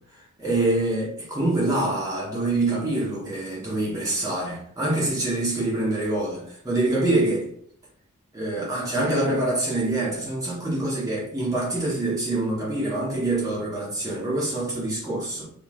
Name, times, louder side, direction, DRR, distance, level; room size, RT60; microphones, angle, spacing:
voice 1, 0.4-7.5 8.3-15.4, right 2 dB, 15° right, 1.0 m, -25 dB
3.8 x 3.2 x 2.4 m
head